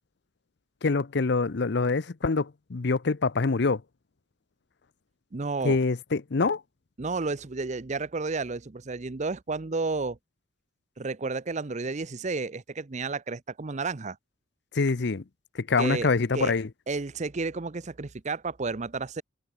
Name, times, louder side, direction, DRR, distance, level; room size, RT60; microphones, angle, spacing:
voice 1, 0.8-3.8 5.6-6.6 14.7-15.2 15.5-16.7, left 4 dB, 60° left, 0.7 m, -25 dB
voice 2, 5.3-5.8 7.0-10.2 11.0-14.2 15.8-16.5 16.9-19.2, right 3 dB, 40° right, 0.7 m, -32 dB
head